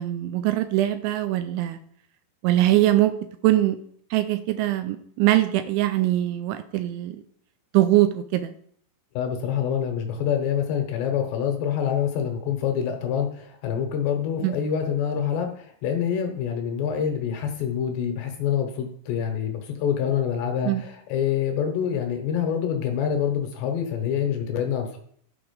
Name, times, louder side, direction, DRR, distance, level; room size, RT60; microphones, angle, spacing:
voice 1, 0.0-1.8 2.4-3.1 3.4-3.8 4.1-7.2 7.7-8.5 14.4-14.6 20.6-20.8, right 15 dB, 85° right, 10 dB, 2.8 m, -22 dB
voice 2, 9.2-25.0, left 8 dB, 75° left, 4 dB, 2.8 m, -26 dB
11.5 x 4.9 x 5.1 m, 0.62 s
omnidirectional pair, 5.6 m